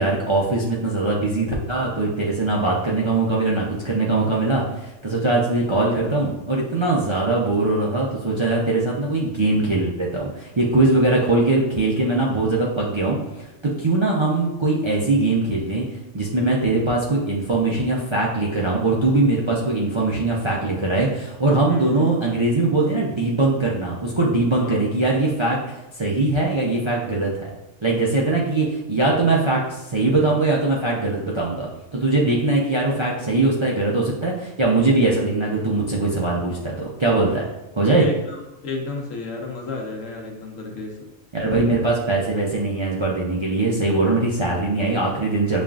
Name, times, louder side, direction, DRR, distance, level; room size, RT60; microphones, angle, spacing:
voice 1, 0.0-13.2 13.6-15.8 16.1-27.5 27.8-37.5 37.7-38.0 41.3-45.6, right 2 dB, 45° right, -4 dB, 0.3 m, -21 dB
voice 2, 21.7-22.2 24.6-24.8 38.0-41.1, left 2 dB, 90° left, 0 dB, 1.2 m, -32 dB
7.1 x 2.5 x 2.4 m, 0.96 s
omnidirectional pair, 1.3 m